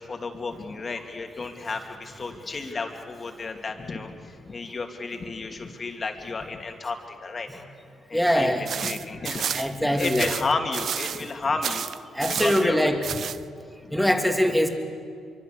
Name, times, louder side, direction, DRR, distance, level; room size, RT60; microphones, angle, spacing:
voice 1, 0.0-7.5 8.1-12.9 13.8-14.1, left 3 dB, 35° left, 4 dB, 2.6 m, -32 dB
voice 2, 8.1-8.6 9.5-10.3 12.1-13.0 13.9-14.7, equal, ahead, 4 dB, 2.5 m, -22 dB
sound 1, 8.7-11.3 11.6-12.7 13.0-13.4, right 8 dB, 60° right, 0.5 m, -31 dB
24.5 x 24.5 x 6.6 m, 2.2 s
cardioid pair, 90°, 0 cm